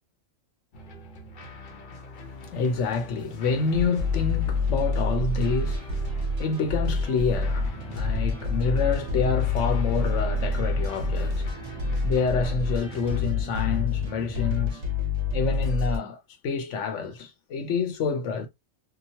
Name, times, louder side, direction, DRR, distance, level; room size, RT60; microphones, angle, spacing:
sound 1, 0.7-13.2, left 2 dB, 45° left, 0.7 m, -44 dB
voice 1, 2.4-11.5 12.0-14.9 15.3-18.5, left 5 dB, 70° left, 1.0 m, -28 dB
sound 2, 3.7-16.0, left 3 dB, 60° right, 1.2 m, -27 dB
sound 3, 7.5-14.7, right 3 dB, 15° left, 1.1 m, -42 dB
2.9 x 2.3 x 2.7 m
omnidirectional pair, 1.4 m